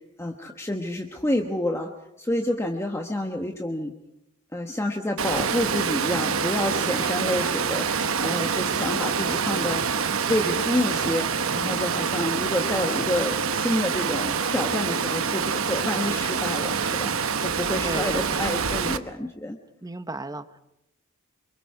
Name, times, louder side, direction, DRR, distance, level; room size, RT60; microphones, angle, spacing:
voice 1, 0.2-1.9 2.2-3.9 4.5-9.8 10.3-19.6, left 1 dB, 10° left, 3 dB, 1.1 m, -28 dB
Water, 5.2-19.0, right 6 dB, 65° right, 1.0 m, -26 dB
voice 2, 17.8-18.5 19.8-20.6, right 2 dB, 15° right, 11 dB, 0.8 m, -35 dB
27.0 x 24.5 x 4.7 m, 0.83 s
head